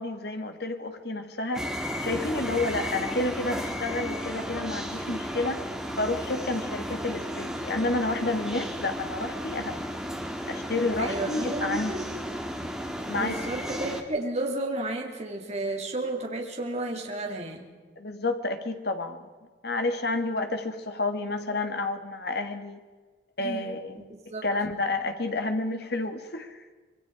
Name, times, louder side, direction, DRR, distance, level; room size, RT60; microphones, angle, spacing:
voice 1, 0.0-1.7 2.0-5.6 6.0-9.9 10.5-12.1 13.1-13.4 18.0-19.2 19.6-22.8 23.4-24.0 24.4-26.6, left 2 dB, 60° left, 6 dB, 2.3 m, -30 dB
sound 1, 1.5-14.0, equal, 5° right, 2.0 m, -34 dB
voice 2, 11.0-12.1 13.1-17.7 23.4-23.8 24.1-24.5, right 2 dB, 35° right, 0 dB, 3.5 m, -32 dB
26.0 x 23.0 x 5.1 m, 1.3 s
head